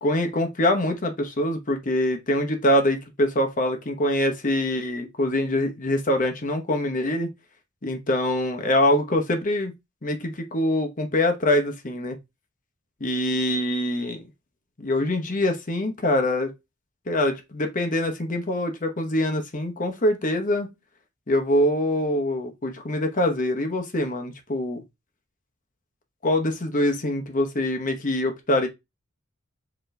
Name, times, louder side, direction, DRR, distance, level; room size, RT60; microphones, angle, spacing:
voice 1, 0.0-7.3 7.8-9.7 10.0-12.2 13.0-14.2 14.8-16.5 17.1-20.7 21.3-24.8 26.2-28.7, left 1 dB, 40° left, 1.0 m, -24 dB
4.6 x 3.1 x 3.2 m
head